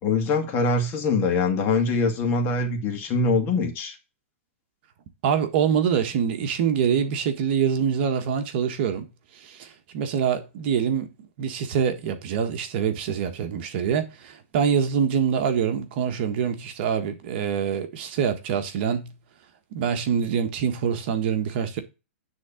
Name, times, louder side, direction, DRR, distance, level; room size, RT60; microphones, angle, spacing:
voice 1, 0.0-4.0, left 3 dB, 30° left, 2.2 m, -23 dB
voice 2, 5.2-9.1 9.4-9.7 9.9-11.1 11.4-19.1 19.7-21.8, right 7 dB, 45° right, 1.5 m, -25 dB
9.7 x 3.8 x 7.2 m
hypercardioid pair, 150°, 8 cm